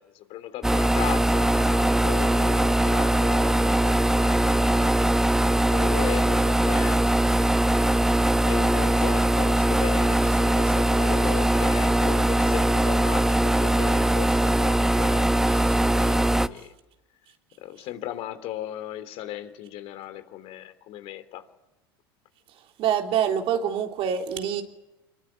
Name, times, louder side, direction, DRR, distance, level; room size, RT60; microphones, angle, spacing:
voice 1, 0.0-5.1 5.7-7.1 8.5-16.7 17.6-21.4, left 13 dB, 55° left, 3.2 m, -37 dB
sound 1, 0.6-16.5, right 1 dB, 5° right, 0.9 m, -21 dB
voice 2, 22.8-24.6, right 8 dB, 50° right, 3.6 m, -25 dB
26.0 x 22.0 x 9.5 m
hypercardioid pair, 95°, 12 cm